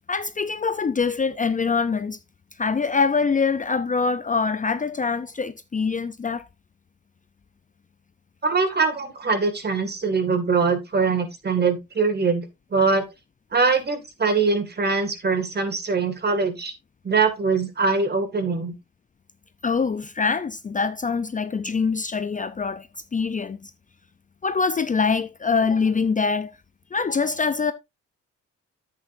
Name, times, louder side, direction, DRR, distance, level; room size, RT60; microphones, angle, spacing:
voice 1, 0.1-2.2 2.6-6.5 19.6-23.7 24.4-26.6 26.9-27.7, left 5 dB, 25° left, 0.6 m, -24 dB
voice 2, 8.4-12.5 12.7-13.1 13.5-16.7 17.0-18.7, right 4 dB, 35° right, 2.2 m, -22 dB
9.9 x 8.3 x 2.6 m
cardioid pair, 90°, 30 cm